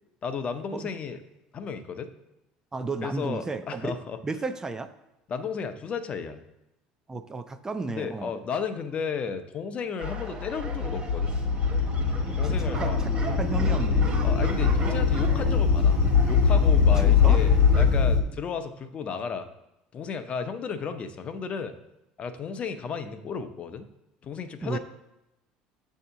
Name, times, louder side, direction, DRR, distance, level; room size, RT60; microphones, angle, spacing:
voice 1, 0.2-1.2 1.5-2.1 3.0-4.2 5.3-6.4 7.9-11.3 12.4-13.0 14.2-16.0 16.3-19.5 19.9-21.7 22.2-23.9 24.2-24.8, left 6 dB, 40° left, 9 dB, 0.6 m, -33 dB
voice 2, 2.7-3.9 4.2-4.9 7.1-8.4 12.1-14.1 17.0-17.4 24.6-24.8, right 3 dB, 20° right, 10 dB, 0.4 m, -33 dB
sound 1, 10.0-18.2, left 5 dB, 60° left, 0.9 m, -22 dB
sound 2, 10.0-17.8, right 3 dB, 35° right, 1.1 m, -41 dB
6.5 x 2.7 x 5.6 m, 0.93 s
supercardioid pair, 90°, 3 cm